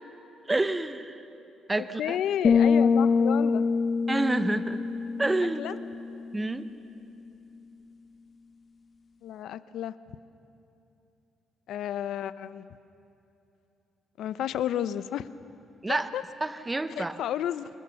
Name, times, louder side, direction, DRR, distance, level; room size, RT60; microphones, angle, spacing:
voice 1, 0.5-1.2 1.7-2.2 4.1-4.8 5.2-5.6 6.3-6.7 15.8-16.1 16.4-17.2, right 2 dB, 15° right, 12 dB, 0.8 m, -28 dB
voice 2, 1.8-3.6 5.6-5.8 9.2-9.9 11.7-12.6 14.2-15.3 15.9-16.2 17.0-17.7, left 10 dB, 75° left, 15 dB, 0.6 m, -32 dB
sound 1, 2.4-6.2, left 5 dB, 35° left, 0.4 m, -24 dB
25.0 x 20.5 x 7.1 m, 2.8 s
cardioid pair, 125°, 0 cm